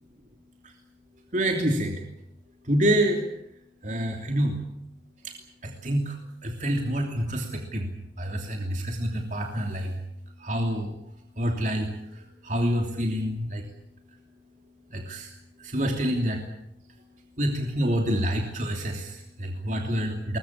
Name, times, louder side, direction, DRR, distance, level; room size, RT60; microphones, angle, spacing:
voice 1, 1.3-2.0 2.6-3.2 3.8-4.6 5.2-5.3 5.6-6.2 6.4-7.9 8.2-10.0 10.4-11.0 11.4-13.6 14.9-15.3 15.6-16.4 17.4-20.4, equal, 45° right, 2 dB, 3.0 m, -27 dB
22.5 x 21.0 x 8.6 m, 0.77 s
head